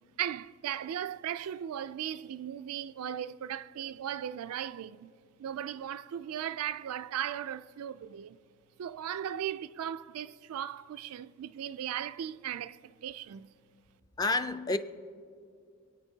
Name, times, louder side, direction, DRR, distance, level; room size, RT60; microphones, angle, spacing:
voice 1, 0.2-5.1 5.4-8.4 8.8-13.5, right 10 dB, 90° right, 0.3 m, -37 dB
voice 2, 14.2-14.8, left 2 dB, 20° left, 0.4 m, -29 dB
27.0 x 9.1 x 2.7 m
head